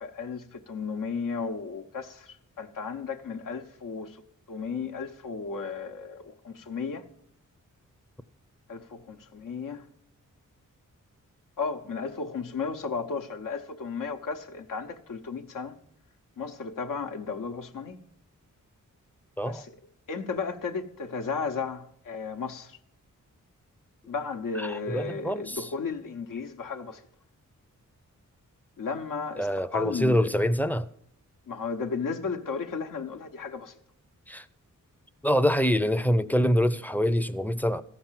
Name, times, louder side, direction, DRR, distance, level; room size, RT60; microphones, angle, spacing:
voice 1, 0.0-4.2 4.5-7.0 8.7-9.8 11.6-15.7 16.4-18.0 19.4-19.8 20.1-22.8 24.1-27.0 28.8-30.3 31.5-33.7, left 5 dB, 80° left, 1.0 m, -34 dB
voice 2, 24.6-25.7 29.4-30.9 34.3-34.4 35.2-37.8, equal, 5° left, 0.5 m, -25 dB
14.0 x 5.9 x 7.4 m
wide cardioid pair, 95°, 32 cm